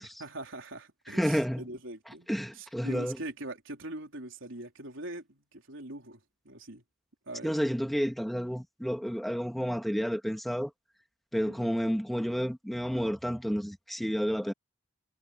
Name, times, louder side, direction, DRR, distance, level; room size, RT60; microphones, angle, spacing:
voice 1, 0.0-2.3 2.5-6.8 7.3-7.5 11.4-11.7, right 2 dB, 70° right, 4.0 m, -42 dB
voice 2, 1.1-1.6 2.3-3.2 7.4-10.7 11.3-14.5, equal, ahead, 2.2 m, -30 dB
head